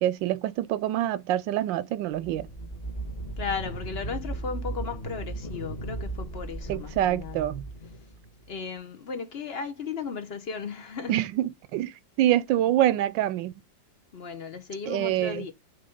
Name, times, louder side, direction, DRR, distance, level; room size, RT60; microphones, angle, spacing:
voice 1, 0.0-2.5 6.7-7.6 11.1-11.9 12.2-13.5 14.9-15.4, right 13 dB, 80° right, 1.3 m, -25 dB
sound 1, 2.2-8.6, right 2 dB, 25° left, 1.0 m, -36 dB
voice 2, 3.4-7.4 8.5-11.1 14.1-15.5, left 5 dB, 50° left, 0.7 m, -35 dB
7.8 x 4.1 x 5.2 m
omnidirectional pair, 2.0 m